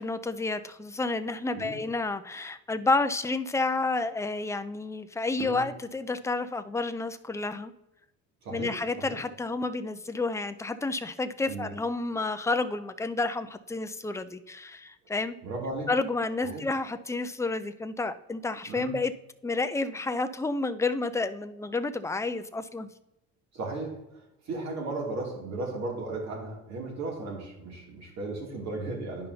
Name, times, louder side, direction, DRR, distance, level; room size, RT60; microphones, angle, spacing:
voice 1, 0.0-7.7 8.5-15.4 15.9-19.1 19.4-22.9, left 3 dB, 10° left, 10 dB, 0.4 m, -30 dB
voice 2, 8.4-9.2 11.5-11.7 15.4-15.9 16.4-16.6 18.7-18.9 23.5-29.3, right 2 dB, 55° right, -1 dB, 2.7 m, -36 dB
11.0 x 5.4 x 2.7 m, 0.91 s
cardioid pair, 120°, 33 cm